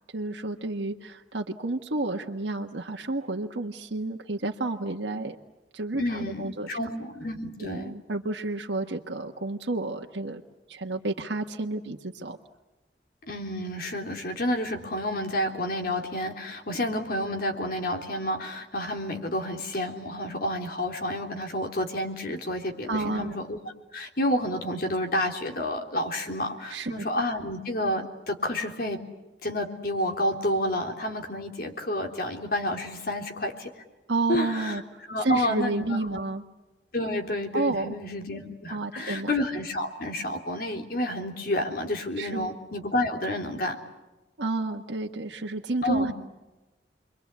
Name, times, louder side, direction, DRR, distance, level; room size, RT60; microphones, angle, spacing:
voice 1, 0.1-5.4 5.7-6.8 7.6-10.4 10.7-12.4 22.9-23.4 26.7-27.1 34.1-34.8 35.2-36.4 37.5-37.9 38.7-39.3 42.2-42.5 44.4-46.1, right 2 dB, 80° right, 2 dB, 1.4 m, -30 dB
voice 2, 6.0-7.9 13.2-23.6 23.9-29.0 29.4-33.8 34.3-34.8 35.1-36.2 36.9-43.8 45.8-46.1, left 1 dB, 55° left, 3 dB, 3.7 m, -30 dB
30.0 x 23.5 x 8.4 m, 1.1 s
head